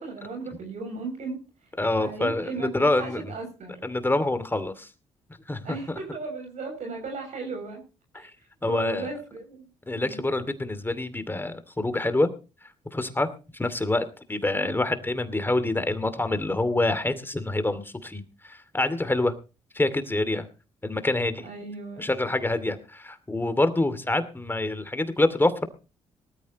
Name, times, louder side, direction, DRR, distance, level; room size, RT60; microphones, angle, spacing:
voice 1, 0.0-1.4 2.0-3.8 5.6-7.8 8.1-8.3 8.6-9.7 9.9-10.2 14.5-14.7 21.4-22.1, right 4 dB, 65° right, 3 dB, 7.2 m, -36 dB
voice 2, 1.8-3.3 3.8-4.9 5.5-6.0 8.1-8.3 8.6-9.1 9.9-12.3 12.9-19.3 19.7-20.5 20.8-21.5 22.0-25.7, left 2 dB, 15° left, 11 dB, 2.5 m, -26 dB
19.0 x 13.5 x 3.1 m, 0.33 s
supercardioid pair, 65°, 13 cm